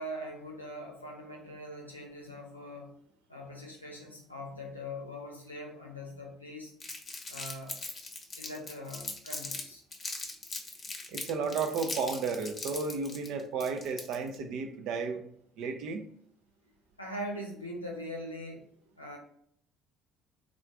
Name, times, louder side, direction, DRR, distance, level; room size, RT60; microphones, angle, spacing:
voice 1, 0.0-2.9 3.3-6.7 7.3-7.7 8.4-9.8 17.0-18.7 19.0-19.2, equal, 85° left, -1 dB, 0.6 m, -42 dB
Crumpling crinkling, 6.8-9.6 9.9-14.3, left 3 dB, 35° left, 0.7 m, -40 dB
voice 2, 11.1-15.2 15.6-16.1, right 5 dB, 60° right, 6 dB, 0.4 m, -33 dB
3.6 x 2.4 x 3.2 m, 0.67 s
figure-of-eight pair, 50°, 0 cm